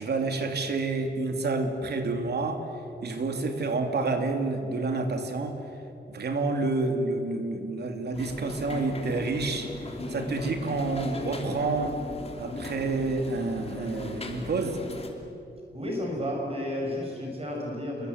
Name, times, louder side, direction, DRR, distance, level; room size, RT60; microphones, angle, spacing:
voice 1, 0.0-2.6 3.0-5.6 6.1-9.7 10.1-12.0 12.4-14.8, right 3 dB, 65° right, 5 dB, 2.9 m, -29 dB
sound 1, 8.1-15.1, left 2 dB, 35° left, 2.9 m, -38 dB
voice 2, 15.7-18.1, left 1 dB, 35° right, -2 dB, 6.2 m, -32 dB
28.0 x 23.0 x 8.1 m, 2.9 s
wide cardioid pair, 150°, 18 cm